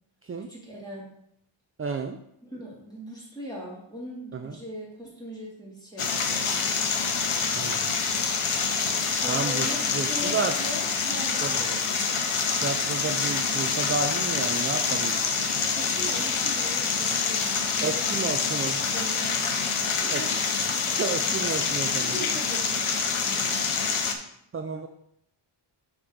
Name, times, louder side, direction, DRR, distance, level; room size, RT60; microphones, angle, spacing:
voice 1, 0.5-1.1 2.4-6.4 9.2-12.1 15.7-20.3 22.0-23.7, equal, 10° left, -5 dB, 2.3 m, -40 dB
voice 2, 1.8-2.2 4.3-4.6 7.5-7.9 9.3-9.7 9.9-10.5 11.4-11.5 12.6-15.1 17.8-18.8 20.1-20.2 21.0-22.1 24.5-24.9, right 5 dB, 30° right, 5 dB, 0.4 m, -31 dB
sound 1, 6.0-24.1, left 5 dB, 80° left, 1.0 m, -26 dB
6.2 x 6.1 x 3.8 m, 0.74 s
wide cardioid pair, 140°, 50 cm